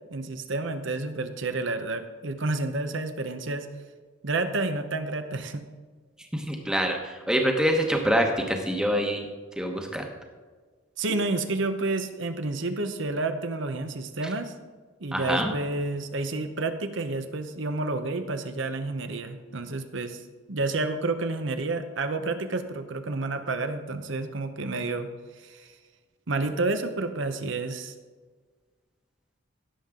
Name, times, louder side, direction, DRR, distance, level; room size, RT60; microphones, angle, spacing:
voice 1, 0.1-3.7 4.2-5.6 11.0-14.5 15.0-20.2 20.5-25.1 25.4-25.7 26.3-27.9, right 3 dB, 65° right, 8 dB, 0.9 m, -30 dB
voice 2, 6.3-9.3 9.6-10.0 15.1-15.5, equal, 5° right, 2 dB, 1.1 m, -25 dB
16.5 x 7.3 x 3.8 m, 1.5 s
head